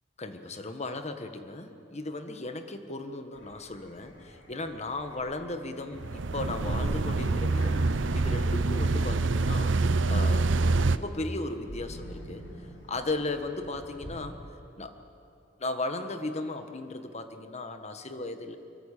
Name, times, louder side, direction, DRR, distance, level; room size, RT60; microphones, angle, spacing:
voice 1, 0.2-12.4 12.9-14.4 14.8-15.0 15.6-18.6, left 2 dB, 35° left, 7 dB, 1.5 m, -36 dB
sound 1, 3.3-14.2, equal, 70° left, 5.5 m, -49 dB
sound 2, 6.0-11.0, right 3 dB, 80° right, 0.8 m, -26 dB
24.5 x 23.5 x 8.5 m, 2.7 s
head